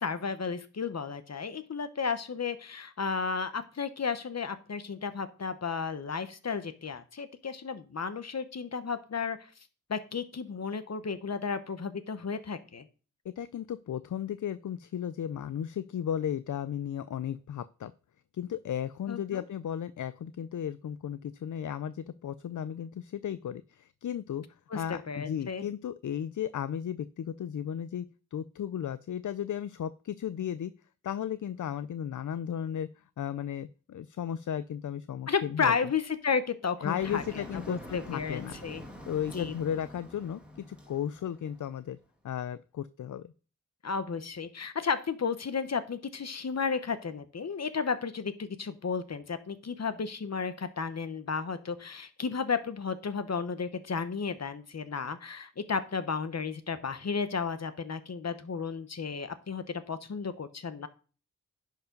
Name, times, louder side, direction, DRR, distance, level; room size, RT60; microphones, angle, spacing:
voice 1, 0.0-9.4 9.9-12.9 19.1-19.4 24.7-25.7 35.3-38.8 39.3-39.5 43.8-60.9, left 5 dB, 55° left, 11 dB, 1.0 m, -33 dB
voice 2, 13.2-17.9 18.3-24.4 24.7-30.7 31.0-35.7 36.8-38.6 39.1-40.4 40.7-42.0 42.2-43.3, left 9 dB, 70° left, 14 dB, 0.5 m, -35 dB
Motor vehicle (road), 37.0-41.9, equal, 5° right, 2.2 m, -46 dB
10.5 x 4.8 x 5.2 m, 0.37 s
wide cardioid pair, 90°, 32 cm